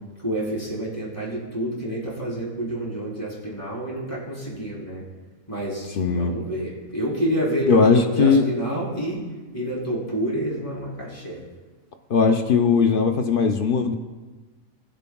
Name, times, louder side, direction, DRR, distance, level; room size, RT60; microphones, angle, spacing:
voice 1, 0.2-5.0 5.5-9.2 9.5-11.5, right 1 dB, 25° left, -6 dB, 3.4 m, -28 dB
voice 2, 6.0-6.3 7.7-8.4 12.1-13.9, left 5 dB, 55° left, 6 dB, 0.6 m, -19 dB
21.0 x 7.0 x 2.3 m, 1.3 s
omnidirectional pair, 1.4 m